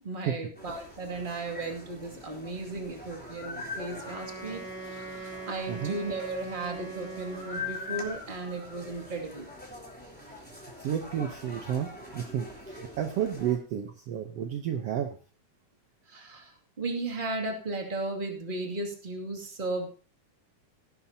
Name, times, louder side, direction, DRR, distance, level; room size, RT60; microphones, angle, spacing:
voice 1, 0.0-9.5 16.1-19.9, right 2 dB, 20° right, 2 dB, 2.2 m, -35 dB
sound 1, 0.6-13.6, left 3 dB, 5° left, 3.1 m, -43 dB
Wind instrument woodwind instrument, 4.0-8.2, right 3 dB, 35° right, 4.6 m, -41 dB
voice 2, 10.8-15.2, right 9 dB, 65° right, 5 dB, 1.8 m, -31 dB
17.0 x 11.5 x 2.8 m, 0.37 s
omnidirectional pair, 3.3 m